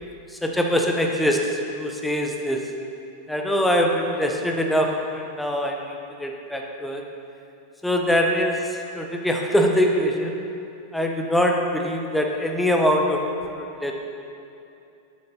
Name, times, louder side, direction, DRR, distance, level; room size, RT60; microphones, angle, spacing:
voice 1, 0.3-1.4 1.7-2.6 3.3-7.0 7.8-10.4 10.9-13.2 13.5-13.9, equal, 5° left, 1 dB, 0.8 m, -23 dB
8.8 x 7.4 x 2.8 m, 2.7 s
figure-of-eight pair, 90°, 0 cm